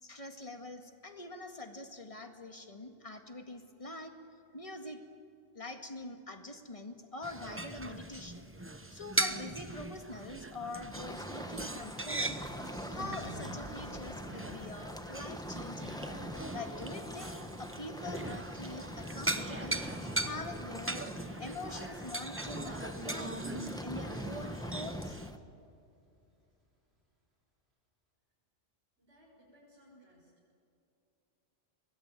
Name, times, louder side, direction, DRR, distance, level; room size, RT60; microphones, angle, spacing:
voice 1, 0.0-4.1 4.5-5.0 5.5-8.5 8.9-16.0 16.5-19.8 20.2-21.1 21.4-25.2, left 2 dB, 30° left, 5 dB, 2.0 m, -44 dB
sound 1, 7.2-25.3, right 2 dB, 15° right, 0.8 m, -40 dB
sound 2, 10.9-25.4, equal, 5° left, 1.1 m, -44 dB
Thunder, 12.2-25.6 25.9-26.2, equal, 65° right, 4.5 m, -55 dB
voice 2, 29.0-30.3, equal, 90° right, -7 dB, 6.9 m, -61 dB
24.0 x 21.0 x 9.2 m, 2.6 s
omnidirectional pair, 1.1 m